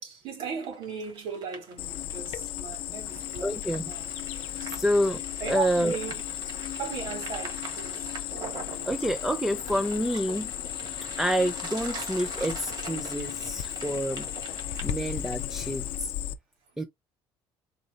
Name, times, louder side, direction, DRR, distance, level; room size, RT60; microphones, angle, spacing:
voice 1, 0.0-4.1 4.6-4.9 5.4-6.2 6.7-8.1 12.3-12.4 16.7-16.9, right 6 dB, 75° right, 2.9 m, -37 dB
sound 1, 0.6-16.1, right 4 dB, 45° right, 1.6 m, -43 dB
Cricket, 1.8-16.3, left 13 dB, 70° left, 0.5 m, -35 dB
voice 2, 3.4-3.8 4.6-5.2 5.5-6.0 8.9-10.5 11.2-14.3 14.8-16.1 16.8-16.9, equal, 5° right, 0.5 m, -28 dB
4.3 x 2.8 x 3.8 m
cardioid pair, 155°, 10 cm